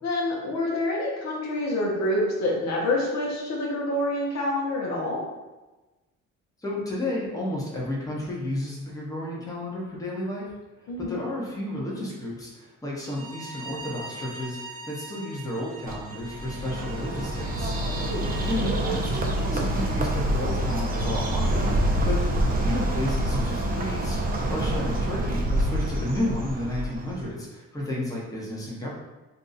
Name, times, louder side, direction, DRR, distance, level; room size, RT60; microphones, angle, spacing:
voice 1, 0.0-5.2 10.9-11.2 18.1-18.2, left 1 dB, 60° left, -3 dB, 0.9 m, -27 dB
voice 2, 6.6-10.5 11.0-17.7 18.4-21.7 22.1-24.2 24.5-28.9, left 1 dB, 10° left, -5 dB, 0.9 m, -32 dB
Bowed string instrument, 13.0-18.6, right 2 dB, 45° right, 0.9 m, -42 dB
Bird, 15.9-27.3, right 1 dB, 30° right, 0.5 m, -26 dB
2.7 x 2.3 x 3.9 m, 1.1 s
cardioid pair, 90°, 30 cm